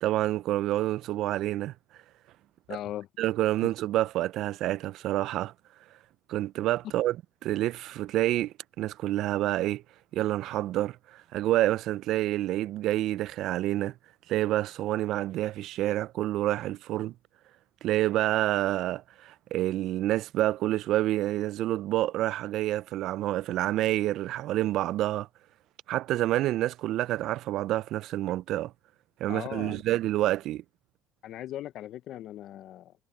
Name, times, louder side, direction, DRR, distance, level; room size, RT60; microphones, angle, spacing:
voice 1, 0.0-1.7 3.2-5.5 6.3-7.2 7.4-9.8 10.1-13.9 14.3-17.1 17.8-25.3 25.9-28.7 29.2-30.6, right 15 dB, 65° right, 0.7 m, -28 dB
voice 2, 2.7-3.1 3.6-3.7 29.3-29.8 31.2-32.9, left 12 dB, 60° left, 1.1 m, -38 dB
hypercardioid pair, 70°, 0 cm